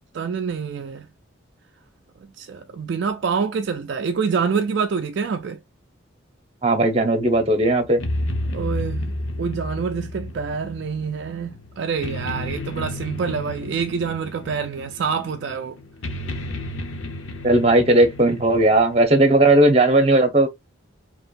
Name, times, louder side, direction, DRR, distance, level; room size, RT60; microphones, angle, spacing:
voice 1, 0.1-1.1 2.2-5.6 8.5-9.1 9.4-15.8, right 5 dB, 60° right, 0.3 m, -26 dB
voice 2, 6.6-8.0 17.4-20.5, right 2 dB, 30° right, 0.8 m, -17 dB
sound 1, 7.2-19.0, left 1 dB, 90° left, 0.8 m, -32 dB
4.3 x 2.9 x 2.5 m
head